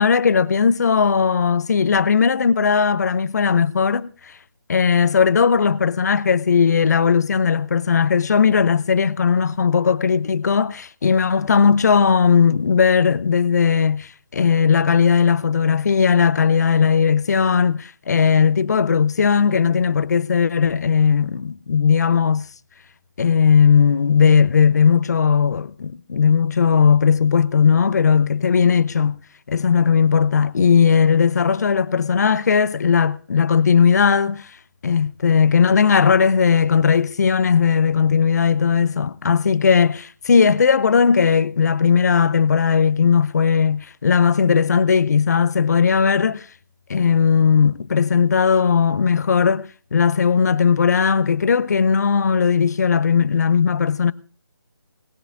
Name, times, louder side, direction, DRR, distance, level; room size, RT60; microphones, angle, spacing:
voice 1, 0.0-4.3 4.7-22.5 23.2-34.5 34.8-46.5 46.9-54.1, left 6 dB, 50° left, 0.6 m, -17 dB
22.0 x 18.5 x 2.5 m
figure-of-eight pair, 160°, 12 cm